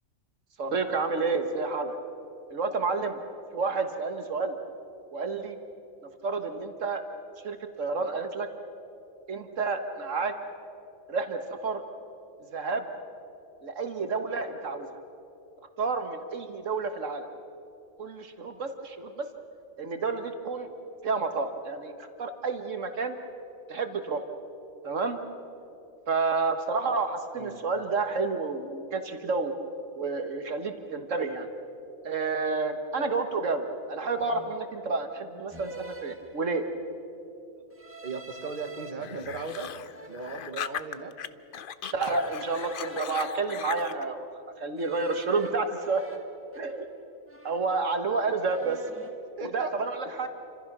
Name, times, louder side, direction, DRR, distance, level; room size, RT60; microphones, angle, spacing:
voice 1, 0.6-2.0 2.5-3.2 3.5-4.6 5.1-5.6 6.2-7.0 7.4-8.5 9.3-10.3 11.1-11.8 12.5-12.9 13.6-15.0 15.8-17.3 18.0-19.3 19.8-20.7 21.0-23.2 23.7-24.2 24.8-25.2 26.1-29.5 30.0-31.5 32.0-36.6 41.9-44.3 44.6-46.0 46.6-46.9 47.4-48.8 49.4-50.3, right 4 dB, 75° right, 6 dB, 1.7 m, -30 dB
sound 1, 33.1-33.3 34.2-34.7 35.5-36.9 37.7-38.9 39.5-41.0 41.8-44.2 44.8-47.0 47.3-48.0 48.3-49.2, right 2 dB, 10° right, 1.7 m, -47 dB
voice 2, 38.0-39.7 40.1-41.1 49.4-49.7 50.0-50.3, right 4 dB, 40° right, 5 dB, 1.6 m, -37 dB
sound 2, 39.0-41.3 41.5-44.0, left 8 dB, 50° left, 0.8 m, -38 dB
29.5 x 26.0 x 6.1 m, 2.7 s
omnidirectional pair, 1.3 m